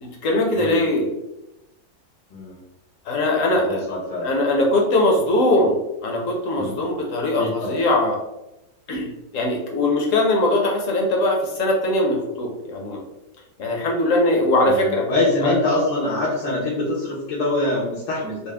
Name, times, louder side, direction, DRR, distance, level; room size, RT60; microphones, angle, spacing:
voice 1, 0.0-1.1 3.1-3.8 4.2-5.8 6.0-8.2 8.9-13.0 13.6-15.1 15.4-15.5, left 1 dB, 60° left, 0 dB, 0.9 m, -21 dB
voice 2, 2.3-2.6 3.5-4.3 6.6-6.8 7.4-7.8 14.6-18.5, left 2 dB, 80° left, -6 dB, 1.4 m, -24 dB
4.2 x 2.0 x 3.3 m, 0.93 s
omnidirectional pair, 1.9 m